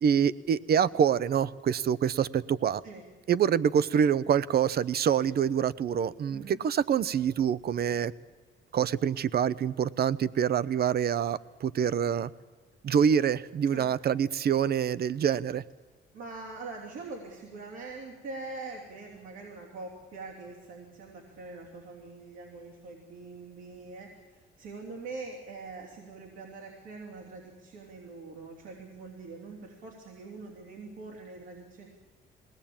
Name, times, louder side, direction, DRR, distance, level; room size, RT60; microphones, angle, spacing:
voice 1, 0.0-2.8 3.3-8.1 8.7-12.3 12.8-15.6, right 8 dB, 50° right, 18 dB, 0.7 m, -26 dB
voice 2, 16.1-31.9, right 3 dB, 85° right, -2 dB, 3.4 m, -43 dB
21.0 x 18.0 x 8.8 m, 1.3 s
cardioid pair, 90°, 20 cm